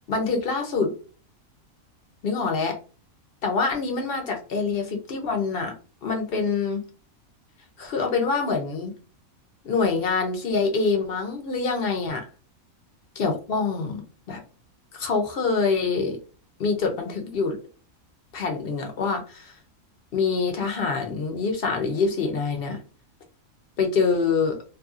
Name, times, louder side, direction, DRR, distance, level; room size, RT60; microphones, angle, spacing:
voice 1, 0.1-0.9 2.2-2.8 3.4-5.7 6.0-6.8 7.8-8.9 9.6-12.3 13.2-14.0 14.3-14.4 14.9-16.2 16.6-17.6 18.3-19.5 20.1-22.8 23.8-24.6, left 4 dB, 55° left, 3 dB, 0.7 m, -25 dB
2.6 x 2.6 x 2.4 m, 0.37 s
omnidirectional pair, 1.4 m